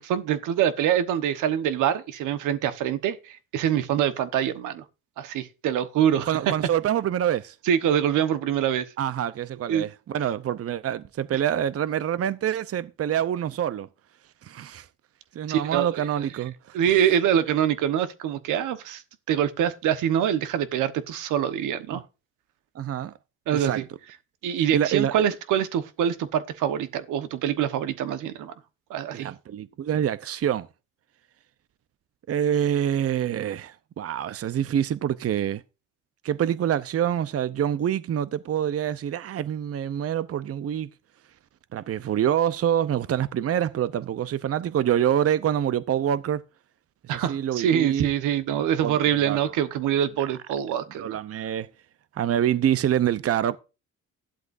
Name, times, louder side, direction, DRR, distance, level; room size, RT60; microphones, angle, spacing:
voice 1, 0.0-4.8 5.2-6.4 7.6-8.9 9.7-9.9 15.5-16.1 16.7-19.0 19.3-22.0 23.5-23.8 24.4-28.5 28.9-29.3 47.1-51.2, right 9 dB, 90° right, 1.3 m, -25 dB
voice 2, 6.3-7.6 9.0-13.9 14.4-14.9 15.3-16.5 21.9-22.0 22.7-23.1 23.5-23.8 24.7-25.1 29.1-30.7 32.3-35.6 36.2-40.9 41.7-46.4 47.1-48.1 48.8-49.4 51.0-51.7 52.2-53.6, right 10 dB, 50° right, 0.8 m, -26 dB
13.5 x 11.5 x 2.6 m
cardioid pair, 90°, 30 cm